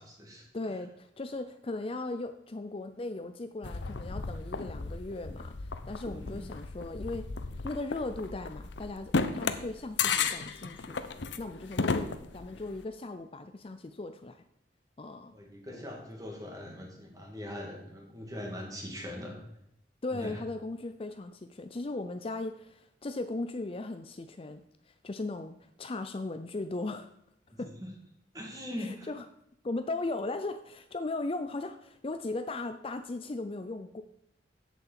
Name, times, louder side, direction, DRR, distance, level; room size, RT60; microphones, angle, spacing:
voice 1, 0.0-0.5 6.0-6.5 15.3-19.4 20.1-20.4 27.5-27.9 28.3-29.1, left 1 dB, 20° right, 0 dB, 2.4 m, -41 dB
voice 2, 0.5-7.2 7.6-14.4 15.0-15.3 15.7-15.8 20.0-27.1 27.6-27.7 28.8-29.3 29.6-34.0, left 2 dB, 30° left, 9 dB, 0.5 m, -37 dB
sound 1, 3.6-12.8, left 4 dB, 80° left, 0.8 m, -34 dB
8.3 x 7.7 x 7.4 m, 0.78 s
head